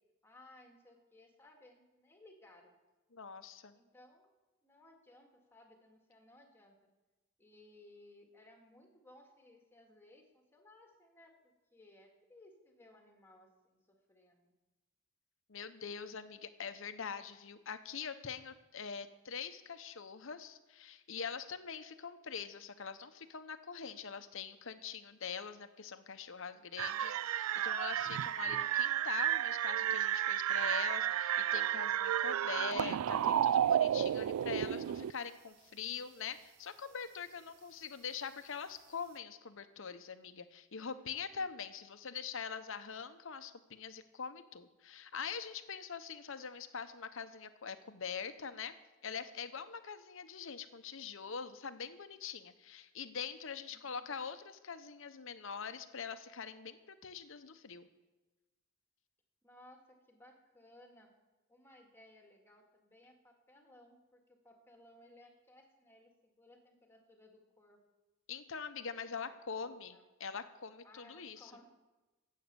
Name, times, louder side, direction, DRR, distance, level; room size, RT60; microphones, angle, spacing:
voice 1, 0.2-2.7 3.7-4.3 4.6-6.8 7.4-14.5 40.9-41.6 53.7-54.1 59.4-61.1 61.5-67.8 69.2-70.0 70.8-71.7, left 1 dB, 10° left, 2 dB, 2.0 m, -61 dB
voice 2, 3.1-3.8 15.5-48.7 49.0-57.9 68.3-71.5, left 6 dB, 65° left, 10 dB, 0.9 m, -44 dB
sound 1, 26.8-35.1, right 10 dB, 90° right, 0.3 m, -32 dB
16.0 x 8.4 x 6.9 m, 1.1 s
head